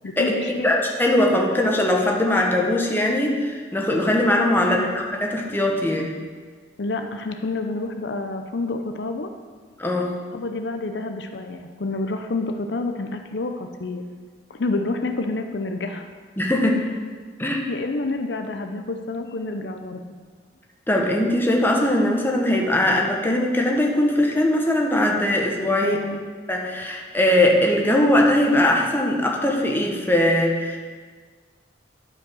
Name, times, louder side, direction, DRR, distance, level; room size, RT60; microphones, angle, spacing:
voice 1, 0.0-0.7 4.6-5.1 6.8-9.3 10.3-14.0 14.5-16.1 17.7-20.0 25.8-26.2, left 2 dB, 70° left, 6 dB, 0.6 m, -28 dB
voice 2, 0.6-6.1 9.8-10.2 16.4-16.9 17.4-17.6 20.9-26.0 26.5-30.8, left 1 dB, 10° left, 0 dB, 1.2 m, -20 dB
12.0 x 5.4 x 6.3 m, 1.5 s
head